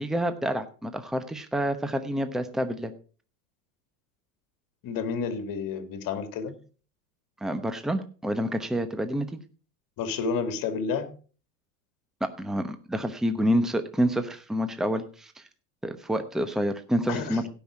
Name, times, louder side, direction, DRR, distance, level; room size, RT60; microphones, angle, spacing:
voice 1, 0.0-2.9 7.4-9.4 12.2-15.4 15.8-17.5, equal, ahead, 0.9 m, -28 dB
voice 2, 4.8-6.6 10.0-11.1 17.1-17.5, left 5 dB, 45° left, 2.3 m, -30 dB
16.5 x 5.8 x 4.9 m
supercardioid pair, 115°, 46 cm